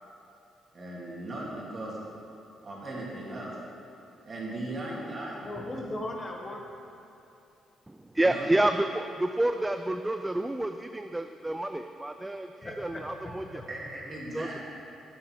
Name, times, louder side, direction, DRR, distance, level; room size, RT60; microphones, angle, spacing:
voice 1, 0.7-2.0 2.6-3.5 4.2-5.4 8.2-8.5 13.7-14.6, right 1 dB, 35° right, -4 dB, 2.6 m, -37 dB
voice 2, 5.4-6.7 12.6-13.6, left 1 dB, 30° left, 1 dB, 1.3 m, -38 dB
voice 3, 7.9-13.7 14.3-14.6, right 1 dB, 10° right, 7 dB, 0.4 m, -29 dB
9.9 x 8.9 x 4.7 m, 2.7 s
cardioid pair, 90°, 0 cm